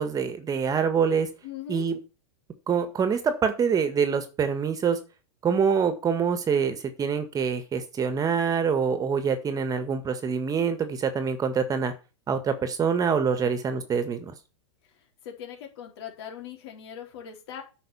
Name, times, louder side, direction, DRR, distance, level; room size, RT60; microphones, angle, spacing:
voice 1, 0.0-1.3 1.7-2.0 2.7-5.0 5.4-11.9 12.3-14.3, right 6 dB, 25° right, 9 dB, 1.8 m, -25 dB
voice 2, 1.4-1.9 13.4-13.5 15.2-17.6, left 9 dB, 60° left, 2 dB, 4.2 m, -40 dB
8.7 x 5.7 x 7.1 m, 0.32 s
hypercardioid pair, 110°, 15 cm